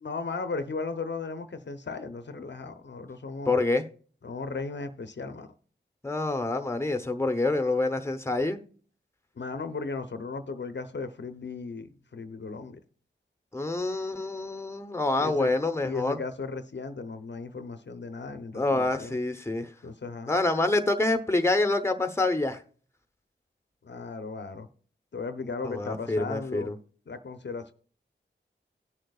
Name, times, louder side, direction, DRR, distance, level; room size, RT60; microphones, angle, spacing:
voice 1, 0.0-3.6 4.2-5.5 9.4-12.8 15.2-15.5 15.8-19.2 19.8-20.3 23.8-24.7 25.1-26.7 27.1-27.7, left 4 dB, 65° left, 0.8 m, -36 dB
voice 2, 3.5-3.8 6.0-8.6 13.5-16.2 18.5-19.7 20.3-22.6 25.6-26.7, left 2 dB, 15° left, 0.9 m, -27 dB
17.5 x 6.5 x 2.4 m
wide cardioid pair, 60°, 20 cm